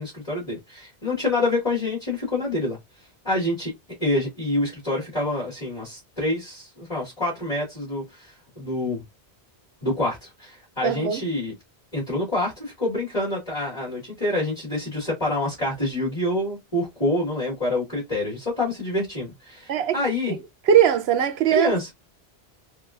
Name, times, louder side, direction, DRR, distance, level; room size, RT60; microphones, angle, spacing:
voice 1, 0.0-2.8 3.2-3.7 4.0-9.0 9.8-11.5 11.9-20.3 21.5-21.9, left 1 dB, 35° left, 2.3 m, -27 dB
voice 2, 10.8-11.2 19.7-20.0 20.3-20.4 20.7-21.7, right 9 dB, 75° right, 0.9 m, -20 dB
4.7 x 2.6 x 2.5 m
omnidirectional pair, 1.1 m